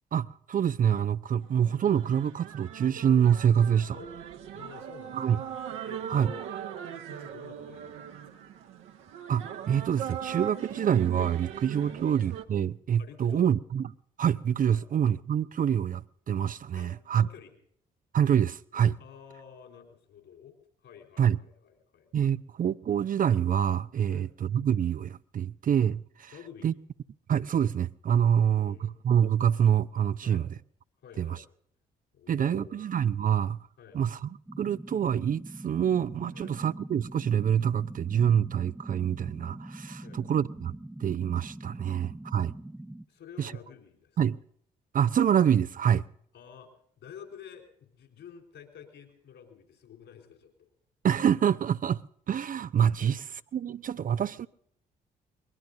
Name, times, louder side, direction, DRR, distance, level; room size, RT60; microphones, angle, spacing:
voice 1, 0.1-4.0 5.1-5.4 6.1-6.3 9.3-13.8 14.2-17.3 18.1-19.0 21.2-21.4 22.1-26.3 26.6-26.7 27.3-30.5 31.2-31.4 32.3-33.6 33.9-34.3 34.6-40.7 41.0-42.5 43.4-43.5 44.2-44.4 44.9-46.0 51.0-52.0 52.3-53.2 53.5-54.5, right 8 dB, 40° right, 0.5 m, -26 dB
sound 1, 1.4-12.5, right 9 dB, 70° right, 1.2 m, -40 dB
voice 2, 4.5-6.5 7.1-8.5 11.8-12.0 13.0-13.5 14.7-14.8 16.7-17.6 19.0-20.6 20.8-22.1 24.1-24.3 26.3-26.7 28.3-28.9 30.2-30.5 31.0-31.4 32.1-32.8 33.8-34.0 36.3-36.6 40.0-40.2 43.1-44.2 46.3-46.7 47.0-50.7 53.0-53.2, left 8 dB, 65° left, 4.3 m, -50 dB
sound 2, 34.5-43.0, right 1 dB, 5° right, 0.8 m, -43 dB
23.0 x 21.0 x 2.7 m
hypercardioid pair, 45°, 21 cm